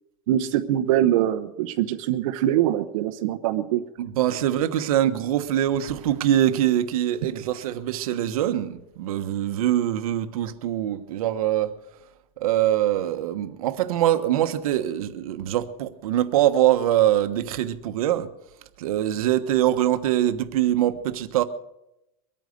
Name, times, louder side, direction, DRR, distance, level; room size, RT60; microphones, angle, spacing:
voice 1, 0.3-3.8, right 12 dB, 70° right, 1.0 m, -23 dB
voice 2, 4.0-11.7 12.4-18.3 18.8-21.4, right 12 dB, 85° right, 1.2 m, -23 dB
23.5 x 9.1 x 6.6 m
supercardioid pair, 150°, 18 cm